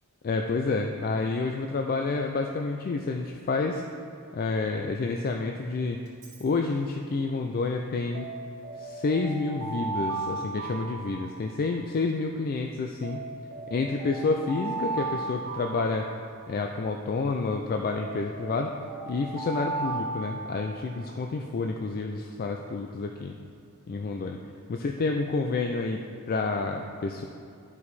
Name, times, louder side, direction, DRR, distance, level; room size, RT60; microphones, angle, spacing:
voice 1, 0.2-3.8 4.3-6.0 6.4-8.3 8.8-13.2 13.7-16.1 16.5-18.7 19.1-23.3 23.9-24.4 24.7-26.0 26.3-27.2, left 3 dB, 40° left, 3 dB, 0.3 m, -29 dB
Alarm, 6.1-6.4 8.1-11.9 13.0-16.8 17.9-21.1, right 3 dB, 85° right, 1.7 m, -36 dB
11.0 x 4.8 x 4.1 m, 2.5 s
head